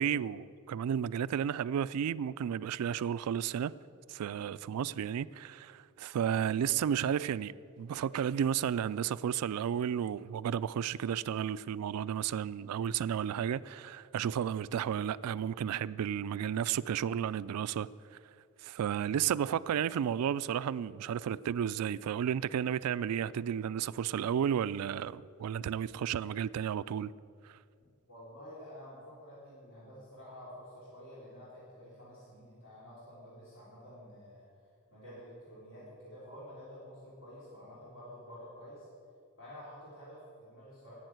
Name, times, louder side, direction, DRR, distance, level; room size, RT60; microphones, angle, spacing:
voice 1, 0.0-3.7 4.1-17.9 18.6-27.1 27.4-27.5, right 9 dB, 85° right, 0.3 m, -32 dB
voice 2, 28.1-34.5 34.9-38.9 39.4-40.9, equal, 60° left, 3.4 m, -50 dB
10.5 x 9.1 x 8.0 m
head